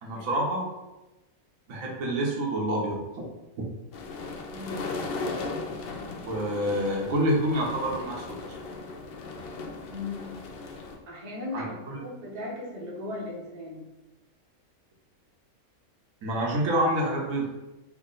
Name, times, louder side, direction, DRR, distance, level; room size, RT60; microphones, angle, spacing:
voice 1, 0.0-0.7 1.7-3.3 6.2-8.4 11.5-12.0 16.2-17.5, right 1 dB, 70° right, -2 dB, 1.1 m, -27 dB
sound 1, 3.9-11.0, left 3 dB, 90° left, 0.5 m, -37 dB
voice 2, 4.5-4.9 9.9-10.4 11.1-13.9, left 2 dB, 40° right, -4 dB, 0.7 m, -37 dB
3.6 x 2.1 x 3.8 m, 1.0 s
omnidirectional pair, 1.5 m